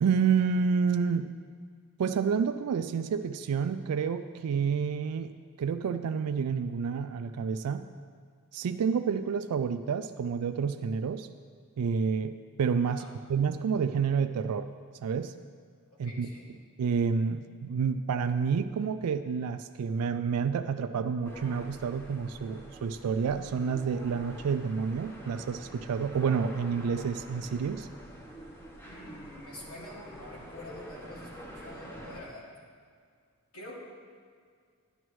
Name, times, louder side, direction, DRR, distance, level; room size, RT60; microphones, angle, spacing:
voice 1, 0.0-1.3 2.0-5.3 5.6-7.9 8.5-11.3 11.8-12.3 12.6-13.0 13.3-14.7 15.0-15.3 16.0-16.3 16.8-27.9, right 6 dB, 85° right, 9 dB, 0.4 m, -29 dB
voice 2, 12.9-13.2 15.9-16.5 28.8-32.5 33.5-33.7, left 1 dB, 80° left, -5 dB, 2.4 m, -47 dB
sound 1, 21.2-32.2, equal, 10° left, 1.0 m, -46 dB
11.0 x 9.9 x 3.1 m, 2.1 s
head